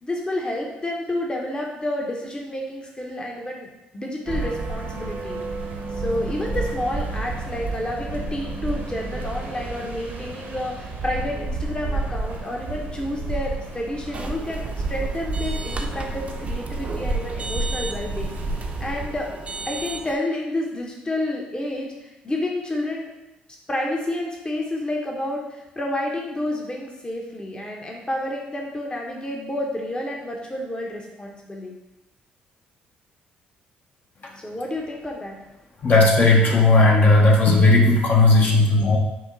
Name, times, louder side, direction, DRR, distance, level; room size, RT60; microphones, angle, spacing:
voice 1, 0.0-3.7 3.9-5.4 5.9-18.4 18.8-19.3 19.7-23.1 23.7-31.7 34.4-35.4, left 1 dB, 25° left, 0 dB, 0.9 m, -29 dB
sound 1, 4.3-19.4, right 3 dB, 60° right, 0.9 m, -30 dB
sound 2, 14.1-20.2, right 3 dB, 35° right, 0.7 m, -35 dB
voice 2, 35.8-39.0, left 2 dB, 50° left, -2 dB, 1.0 m, -15 dB
5.9 x 2.2 x 3.9 m, 0.95 s
hypercardioid pair, 55°, 4 cm